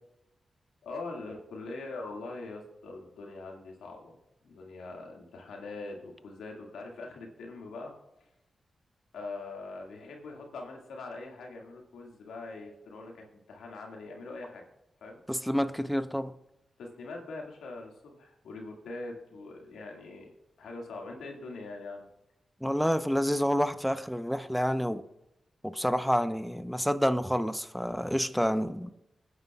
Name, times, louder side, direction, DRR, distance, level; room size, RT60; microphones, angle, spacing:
voice 1, 0.8-4.2 4.4-7.9 9.1-14.6 15.0-15.2 16.8-22.1, left 3 dB, 85° left, 2.0 m, -42 dB
voice 2, 15.3-16.3 22.6-25.0 25.6-28.9, equal, ahead, 0.8 m, -28 dB
21.5 x 9.6 x 2.4 m
supercardioid pair, 40°, 0 cm